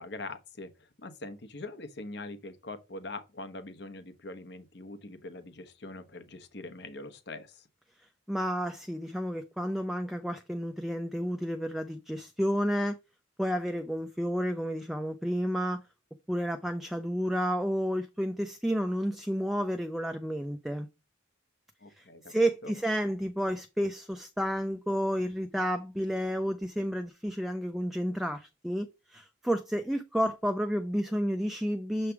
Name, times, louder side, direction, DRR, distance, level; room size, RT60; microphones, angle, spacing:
voice 1, 0.0-7.7 21.8-22.2 22.6-22.8, left 2 dB, 60° left, 1.0 m, -43 dB
voice 2, 8.3-13.0 13.4-15.8 16.3-20.9 22.0-32.1, equal, ahead, 0.4 m, -31 dB
6.9 x 3.3 x 4.6 m
head